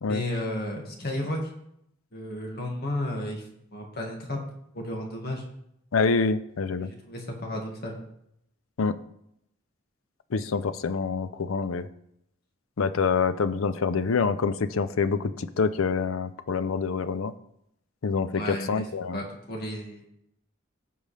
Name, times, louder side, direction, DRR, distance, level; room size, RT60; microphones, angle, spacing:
voice 1, 0.1-1.5 2.1-3.4 3.7-4.4 4.7-5.4 6.7-8.0 18.3-18.8 19.1-20.1, left 1 dB, 50° left, 1 dB, 2.0 m, -33 dB
voice 2, 5.9-6.9 8.8-9.0 10.3-11.9 12.8-17.3 18.0-19.2, left 5 dB, 85° left, 13 dB, 0.5 m, -26 dB
15.5 x 5.3 x 3.3 m, 0.77 s
head